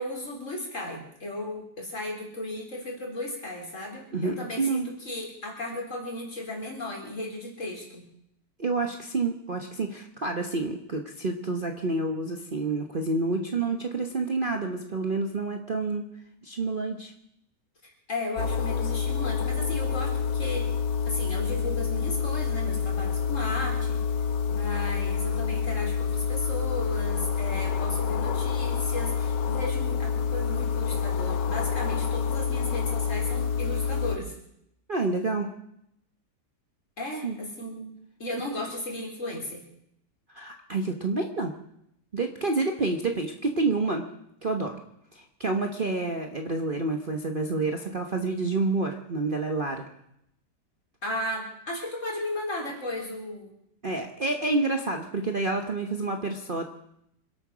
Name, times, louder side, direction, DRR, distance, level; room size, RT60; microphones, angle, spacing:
voice 1, 0.0-8.1 17.8-20.7 21.1-24.0 24.5-34.4 37.0-37.9 38.2-39.6 51.0-53.5, left 1 dB, 45° left, -1 dB, 4.4 m, -35 dB
voice 2, 4.1-4.9 8.6-16.0 16.4-17.1 34.9-35.5 37.2-37.4 40.3-41.5 42.1-44.1 44.4-44.8 45.1-49.9 53.8-56.6, right 3 dB, 35° right, 4 dB, 1.2 m, -28 dB
sound 1, 18.4-34.2, left 6 dB, 85° left, 1.7 m, -28 dB
26.0 x 9.0 x 6.2 m, 0.76 s
omnidirectional pair, 1.8 m